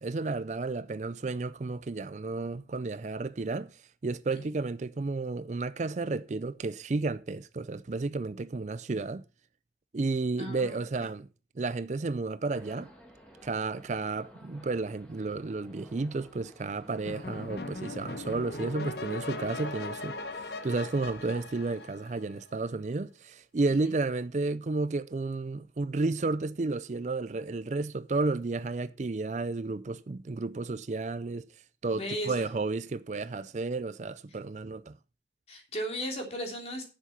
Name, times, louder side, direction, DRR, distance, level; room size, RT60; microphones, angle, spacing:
voice 1, 0.0-3.7 4.0-9.2 9.9-11.3 11.6-12.9 13.4-31.5 31.8-34.9, right 3 dB, 40° right, 0.4 m, -32 dB
voice 2, 10.4-10.8 23.7-23.8 31.9-32.4 35.5-36.8, equal, 35° left, 3.2 m, -36 dB
sound 1, 12.5-21.9, equal, 5° left, 2.3 m, -53 dB
sound 2, 17.0-22.5, left 2 dB, 70° left, 1.0 m, -39 dB
10.5 x 7.4 x 5.8 m
head